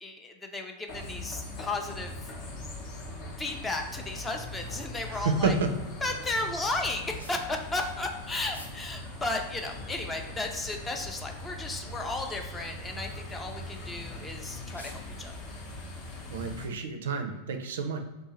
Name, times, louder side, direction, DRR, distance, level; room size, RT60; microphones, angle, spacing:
voice 1, 0.0-2.1 3.4-5.6 6.0-15.4, left 2 dB, 15° left, 3 dB, 0.4 m, -34 dB
sound 1, 0.9-16.7, left 2 dB, 45° left, 0.8 m, -41 dB
voice 2, 5.1-5.7 16.3-18.0, right 4 dB, 60° right, 6 dB, 0.4 m, -29 dB
sound 2, 7.2-7.4 8.5-8.8 9.3-9.4 10.2-10.8 11.6-11.8 12.2-12.3 12.9-13.2 14.1-14.2 14.6-15.1, left 1 dB, 85° left, 0.6 m, -50 dB
3.4 x 2.7 x 2.9 m, 1.1 s
figure-of-eight pair, 90°, 0 cm